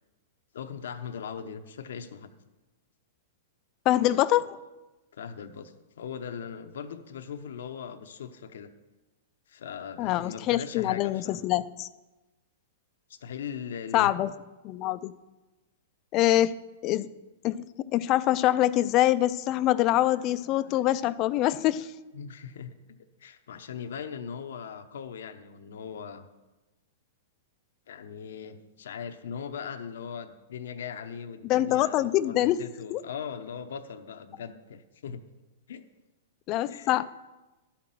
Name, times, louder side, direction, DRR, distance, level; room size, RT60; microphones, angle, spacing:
voice 1, 0.5-2.3 5.1-8.7 9.5-11.4 13.1-14.1 22.1-26.3 27.9-35.2 35.7-35.9 36.7-37.0, left 7 dB, 75° left, 7 dB, 0.8 m, -39 dB
voice 2, 3.9-4.6 10.0-11.9 13.9-14.3 14.6-15.1 16.1-16.5 16.8-17.1 17.4-17.6 17.9-21.9 31.5-32.6 32.9-33.0 36.5-37.1, left 14 dB, 40° left, 15 dB, 0.4 m, -24 dB
12.0 x 5.9 x 7.6 m, 1.1 s
hypercardioid pair, 130°, 0 cm